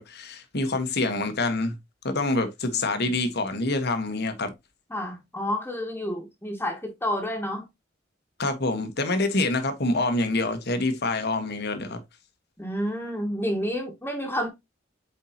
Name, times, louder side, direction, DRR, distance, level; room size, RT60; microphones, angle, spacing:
voice 1, 0.0-1.7 2.0-4.5 8.4-12.0, left 2 dB, 55° left, 1.3 m, -26 dB
voice 2, 2.7-3.1 4.9-7.7 12.6-14.5, equal, 10° left, 1.4 m, -30 dB
8.2 x 4.5 x 2.9 m
head